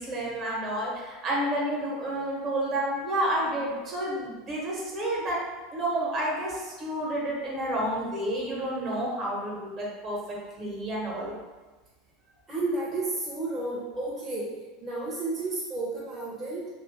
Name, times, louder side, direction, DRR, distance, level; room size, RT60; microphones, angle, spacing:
voice 1, 0.0-5.4 5.7-10.2 10.6-11.3, right 1 dB, 40° right, -3 dB, 1.2 m, -30 dB
voice 2, 12.5-16.7, right 2 dB, 25° right, -7 dB, 0.8 m, -32 dB
2.7 x 2.6 x 3.3 m, 1.3 s
hypercardioid pair, 100°, 0 cm